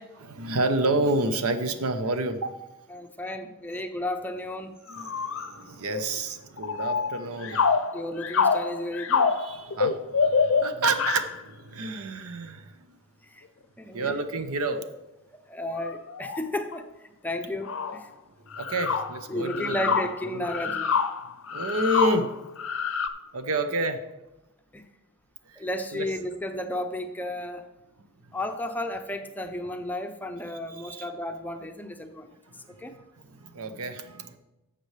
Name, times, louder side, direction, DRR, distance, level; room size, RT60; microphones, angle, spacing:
voice 1, 0.2-2.6 4.9-7.9 9.2-12.8 13.9-14.8 18.5-19.9 20.3-20.5 21.2-22.3 22.9-23.0 23.3-24.0 25.5-25.7 25.9-26.1 28.2-28.3 30.5-31.1 32.5-34.4, right 2 dB, 85° right, 9 dB, 0.8 m, -30 dB
voice 2, 2.9-4.8 7.9-9.4 13.3-13.4 13.8-14.1 15.5-16.9 17.2-18.1 19.3-21.0 24.7-24.8 25.6-27.7 28.3-32.3 32.8-32.9, left 1 dB, 10° left, 6 dB, 0.5 m, -33 dB
sound 1, 4.9-5.5 5.9-6.2 6.6-11.4 14.8-14.9 15.7-16.4 16.7-16.8 17.3-17.4 17.6-18.0 18.5-23.1, left 5 dB, 60° left, 0.6 m, -27 dB
12.0 x 7.6 x 3.3 m, 0.97 s
head